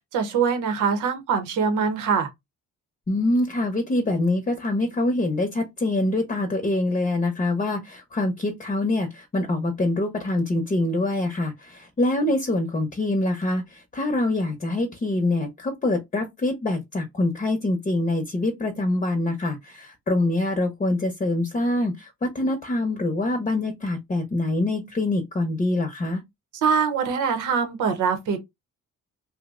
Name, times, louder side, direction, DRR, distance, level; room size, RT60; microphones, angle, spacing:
voice 1, 0.1-2.3 26.5-28.4, right 6 dB, 85° right, 0.9 m, -23 dB
voice 2, 3.1-26.2, left 2 dB, 25° left, 0.8 m, -25 dB
2.7 x 2.1 x 3.6 m
cardioid pair, 90°, 30 cm